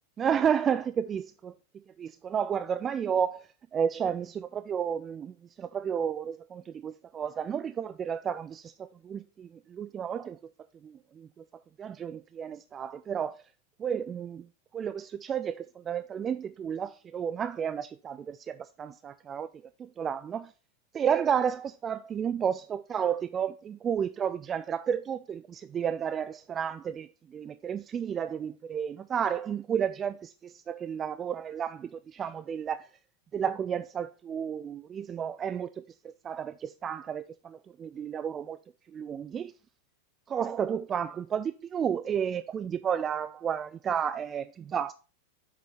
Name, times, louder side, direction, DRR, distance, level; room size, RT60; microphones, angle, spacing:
voice 1, 0.2-1.5 2.0-10.4 10.8-11.3 11.8-13.4 13.8-14.5 14.7-19.5 19.8-20.5 20.9-32.9 33.3-38.6 38.9-39.5 40.3-44.9, right 8 dB, 25° right, 0.3 m, -32 dB
7.8 x 3.8 x 4.2 m
figure-of-eight pair, 90°, 0 cm